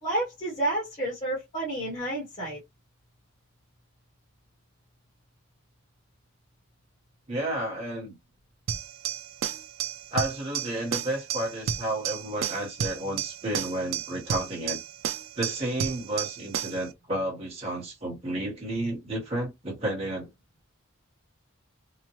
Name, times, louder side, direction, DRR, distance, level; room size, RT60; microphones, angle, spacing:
voice 1, 0.0-2.6, right 1 dB, 30° left, 1.1 m, -30 dB
voice 2, 7.3-8.1 10.1-14.8 15.4-20.3, right 1 dB, 30° right, 1.1 m, -31 dB
sound 1, 8.7-16.9, right 8 dB, 70° right, 0.4 m, -33 dB
2.9 x 2.1 x 2.9 m
head